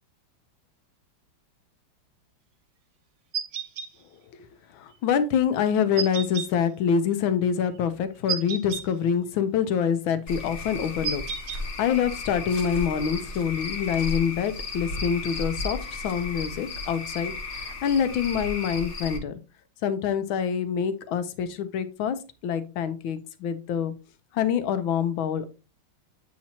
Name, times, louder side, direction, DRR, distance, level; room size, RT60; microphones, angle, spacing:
sound 1, 3.3-3.9 6.0-6.5 8.3-8.8 11.0-11.6, right 6 dB, 60° right, 0.9 m, -31 dB
voice 1, 4.7-11.2 11.8-19.3 19.8-22.2 22.4-23.9 24.3-25.5, left 7 dB, 85° left, 11 dB, 1.5 m, -26 dB
Cricket / Frog, 10.3-19.2, left 3 dB, 45° left, 1.1 m, -34 dB
8.5 x 4.3 x 2.8 m, 0.31 s
omnidirectional pair, 2.1 m